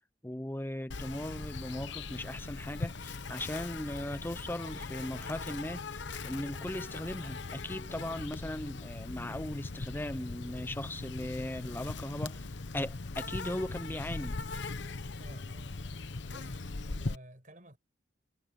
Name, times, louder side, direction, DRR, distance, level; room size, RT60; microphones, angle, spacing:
voice 1, 0.2-5.9 6.2-12.5 12.7-14.4, left 1 dB, 10° left, 0.6 m, -38 dB
Insect, 0.9-17.2, left 3 dB, 65° left, 0.9 m, -40 dB
voice 2, 15.2-16.0 16.2-17.8, right 1 dB, 40° right, 5.7 m, -53 dB
head